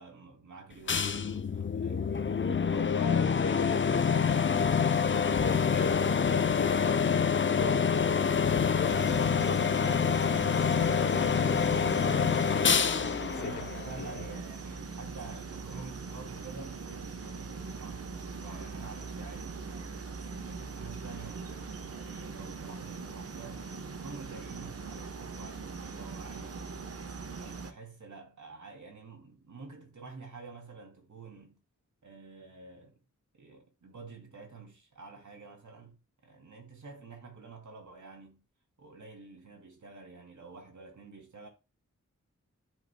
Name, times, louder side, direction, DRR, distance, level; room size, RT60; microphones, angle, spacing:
voice 1, 0.0-2.0 13.4-20.1 20.5-26.8 27.3-31.6 32.0-33.0 33.4-38.4 38.8-41.5, right 4 dB, 70° right, 2.7 m, -49 dB
sound 1, 0.9-14.4, left 6 dB, 40° left, 0.6 m, -27 dB
voice 2, 2.7-7.8 8.3-9.8 10.4-12.8 13.2-13.6 14.0-14.1, left 6 dB, 75° left, 1.0 m, -39 dB
sound 2, 8.8-27.7, right 4 dB, 50° right, 1.0 m, -41 dB
14.0 x 5.4 x 2.2 m
wide cardioid pair, 125°, 30 cm